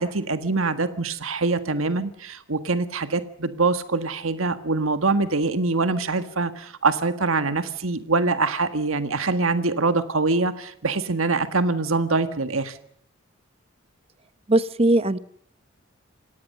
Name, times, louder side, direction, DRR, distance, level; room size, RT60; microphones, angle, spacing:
voice 1, 0.0-12.8, right 3 dB, 85° right, 10 dB, 1.7 m, -24 dB
voice 2, 14.5-15.2, right 1 dB, 30° right, 14 dB, 0.9 m, -19 dB
27.5 x 18.0 x 6.7 m, 0.64 s
head